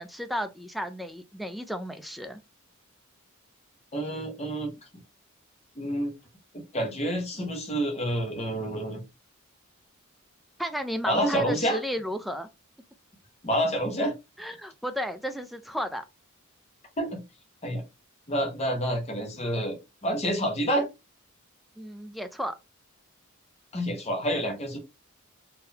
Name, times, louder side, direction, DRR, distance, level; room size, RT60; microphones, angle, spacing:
voice 1, 0.0-2.4 10.6-12.5 14.4-16.0 21.8-22.6, equal, ahead, 0.3 m, -33 dB
voice 2, 3.9-4.7 5.8-6.1 6.7-9.0 11.1-11.8 13.4-14.1 17.0-17.2 17.6-17.8 18.3-20.9 23.7-24.8, equal, 30° left, 1.0 m, -28 dB
3.8 x 2.8 x 2.7 m
head